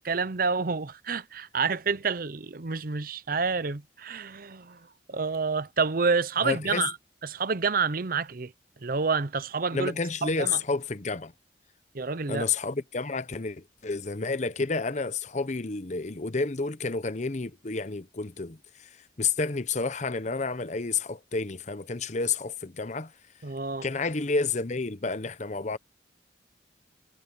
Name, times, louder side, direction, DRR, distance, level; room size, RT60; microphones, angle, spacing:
voice 1, 0.0-7.0 7.2-8.5 8.8-10.6 11.9-12.4 23.4-23.9, right 4 dB, 55° right, 0.8 m, -29 dB
voice 2, 6.4-6.9 9.7-11.3 12.3-18.9 19.2-23.1 23.8-25.8, left 4 dB, 40° left, 0.9 m, -30 dB
head